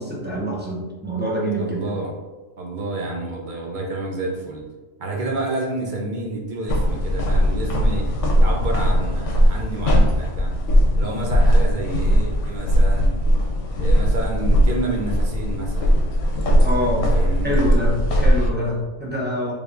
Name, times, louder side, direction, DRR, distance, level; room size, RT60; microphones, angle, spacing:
voice 1, 0.0-1.8 16.6-17.1 17.4-19.5, equal, 15° right, -5 dB, 0.3 m, -25 dB
voice 2, 1.6-2.1 2.6-4.6 5.0-8.1 8.4-10.5 11.0-13.1 13.8-16.0 17.1-17.6, right 2 dB, 50° right, -2 dB, 0.7 m, -29 dB
sound 1, 6.7-18.5, equal, 75° left, 0.9 m, -19 dB
3.4 x 3.4 x 2.4 m, 1.2 s
omnidirectional pair, 1.3 m